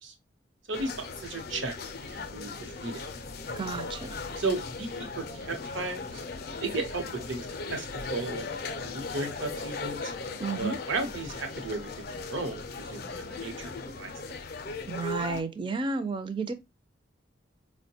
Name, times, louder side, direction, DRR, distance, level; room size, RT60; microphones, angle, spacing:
sound 1, 0.7-15.4, left 3 dB, 50° left, 0.4 m, -38 dB
voice 1, 0.7-1.7 2.0-3.0 4.4-6.2 6.6-8.4 8.8-10.1 10.6-14.1, right 3 dB, 85° right, 0.8 m, -35 dB
voice 2, 3.5-4.2 10.4-10.8 14.9-16.5, right 4 dB, 25° right, 0.4 m, -32 dB
4.5 x 2.1 x 2.7 m
head